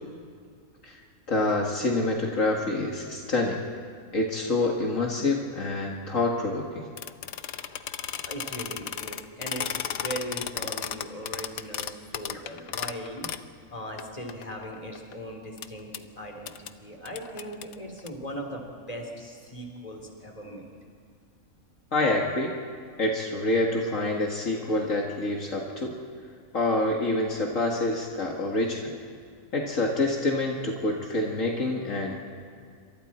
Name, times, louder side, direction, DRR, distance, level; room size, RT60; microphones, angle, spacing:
voice 1, 1.3-3.6 4.1-6.9 21.9-22.5 23.0-25.9 26.5-28.9 29.5-32.1, left 2 dB, 65° left, -1 dB, 2.2 m, -27 dB
sound 1, 7.0-13.5 14.0-14.1 14.3-15.1 15.6-15.7 15.9-16.0 16.5-16.7 17.1-18.1, left 9 dB, 80° left, 1.2 m, -34 dB
voice 2, 8.3-13.3 13.7-15.9 16.2-20.8, equal, 25° left, 1 dB, 3.6 m, -39 dB
28.0 x 25.5 x 4.4 m, 2.2 s
omnidirectional pair, 1.5 m